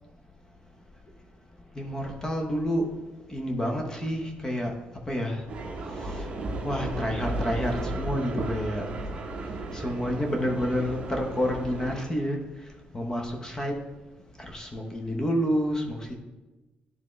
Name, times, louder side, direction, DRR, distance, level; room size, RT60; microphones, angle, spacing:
voice 1, 1.8-2.9 3.3-4.7 5.1-5.4 6.6-8.9 9.7-12.4 12.9-13.8 14.5-16.2, equal, 20° left, 2 dB, 0.8 m, -29 dB
sound 1, 5.5-12.0, right 2 dB, 35° right, 0.9 m, -34 dB
10.5 x 3.6 x 3.2 m, 1.1 s
cardioid pair, 140°, 3 cm